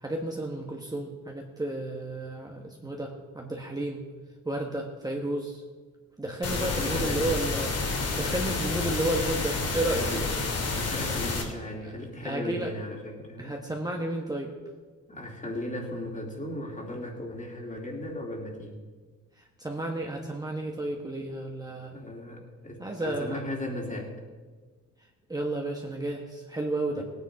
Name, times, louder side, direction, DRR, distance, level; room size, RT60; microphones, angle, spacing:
voice 1, 0.0-4.0 4.4-5.6 6.2-10.1 12.2-12.7 13.4-14.5 19.6-21.9 22.8-23.4 25.3-27.0, right 1 dB, 15° right, 0 dB, 1.4 m, -32 dB
sound 1, 6.4-11.4, left 3 dB, 55° left, 2.6 m, -29 dB
voice 2, 6.5-7.3 9.7-10.4 10.7-13.6 15.1-18.8 21.7-24.1 26.9-27.0, left 1 dB, 25° left, 1 dB, 3.1 m, -36 dB
17.5 x 9.6 x 4.9 m, 1.4 s
cardioid pair, 90°, 30 cm